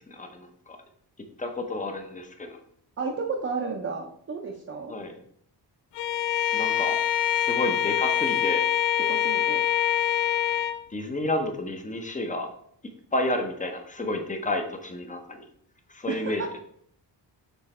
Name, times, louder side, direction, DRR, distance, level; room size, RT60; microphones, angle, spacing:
voice 1, 0.1-0.8 1.4-2.6 4.9-5.2 6.5-6.9 7.3-8.6 10.9-12.5 13.1-15.4 15.9-16.6, left 1 dB, 20° left, 5 dB, 0.7 m, -30 dB
voice 2, 3.0-4.9 9.0-9.6 16.1-16.6, right 4 dB, 35° right, 0 dB, 0.7 m, -32 dB
Bowed string instrument, 6.0-10.8, left 10 dB, 90° left, 0.6 m, -25 dB
7.0 x 3.9 x 4.3 m, 0.65 s
wide cardioid pair, 175°, 41 cm